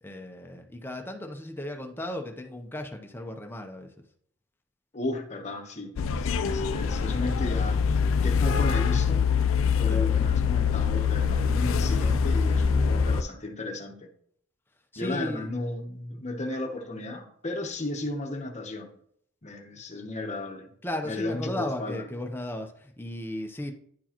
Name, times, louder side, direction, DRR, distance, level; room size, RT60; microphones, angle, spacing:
voice 1, 0.0-3.9 9.9-10.1 14.9-15.5 20.8-23.7, left 1 dB, 10° left, 4 dB, 0.7 m, -35 dB
voice 2, 4.9-7.8 8.2-9.3 9.8-14.1 15.0-19.0 19.4-20.7 21.0-22.0, left 2 dB, 35° left, 3 dB, 1.0 m, -34 dB
sound 1, 6.0-13.2, left 6 dB, 65° left, 0.4 m, -24 dB
10.0 x 4.5 x 2.9 m, 0.65 s
head